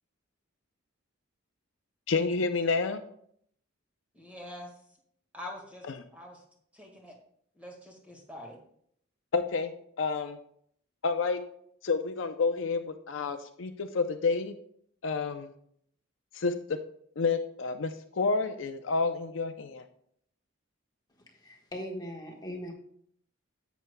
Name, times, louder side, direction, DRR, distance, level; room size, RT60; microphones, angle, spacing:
voice 1, 2.1-3.0 9.3-9.7 10.0-10.4 11.0-11.4 11.8-14.5 15.0-15.5 16.3-16.5 17.2-19.8, left 4 dB, 65° left, 8 dB, 0.5 m, -29 dB
voice 2, 4.1-4.7 5.3-5.8 6.1-6.4 6.7-7.1 7.6-8.6, left 1 dB, 5° right, 0 dB, 1.6 m, -44 dB
voice 3, 21.4-22.7, equal, 20° left, 0 dB, 1.3 m, -39 dB
10.0 x 8.1 x 2.2 m, 0.66 s
head